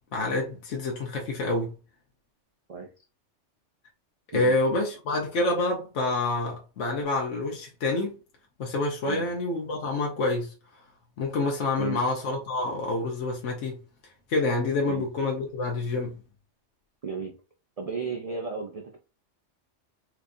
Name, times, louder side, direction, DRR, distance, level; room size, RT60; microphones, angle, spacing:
voice 1, 0.1-1.7 4.3-8.2 8.6-10.5 11.2-13.8 14.3-16.2, left 2 dB, 80° left, 1.1 m, -27 dB
voice 2, 17.0-17.4 17.8-19.0, right 5 dB, 65° right, 0.3 m, -34 dB
4.4 x 2.5 x 2.6 m
omnidirectional pair, 1.3 m